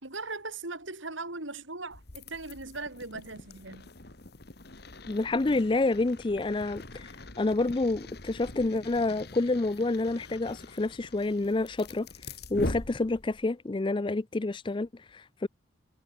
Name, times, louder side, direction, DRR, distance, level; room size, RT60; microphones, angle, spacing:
voice 1, 0.0-3.9, right 3 dB, 80° right, 6.0 m, -39 dB
sound 1, 1.9-13.5, left 2 dB, 55° left, 2.1 m, -43 dB
voice 2, 5.1-7.1 7.4-15.5, left 2 dB, 25° left, 0.4 m, -28 dB
head